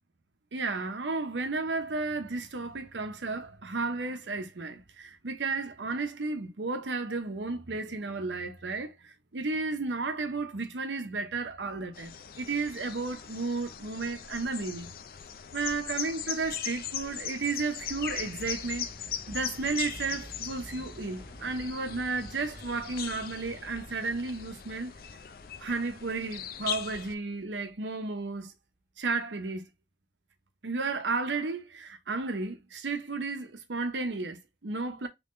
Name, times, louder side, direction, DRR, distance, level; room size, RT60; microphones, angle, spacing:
voice 1, 0.5-8.9 9.3-14.9 15.5-18.9 19.3-24.9 25.6-28.5 29.0-29.6 30.6-35.1, right 3 dB, 85° right, 0.8 m, -33 dB
sound 1, 11.9-27.1, left 9 dB, 55° left, 0.4 m, -40 dB
sound 2, 17.8-27.7, equal, 10° right, 0.9 m, -50 dB
3.7 x 3.1 x 2.5 m
head